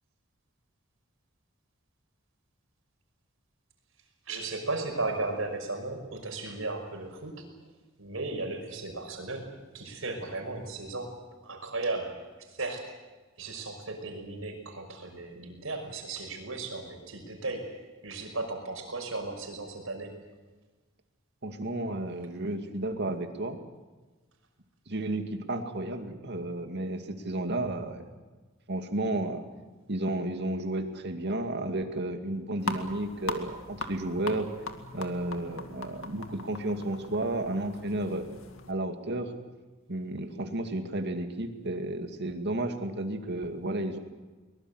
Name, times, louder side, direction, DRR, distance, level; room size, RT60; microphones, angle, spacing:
voice 1, 4.3-7.4 8.0-11.2 11.4-12.3 12.6-12.9 13.4-20.1, right 3 dB, 75° right, 3 dB, 5.7 m, -35 dB
voice 2, 21.4-23.6 24.9-28.0 28.7-29.4 29.9-34.5 34.9-38.2 38.7-39.3 39.9-44.0, right 1 dB, 55° right, 6 dB, 2.3 m, -32 dB
sound 1, 32.6-38.7, left 3 dB, 75° left, 2.3 m, -40 dB
23.0 x 21.0 x 8.0 m, 1.3 s
head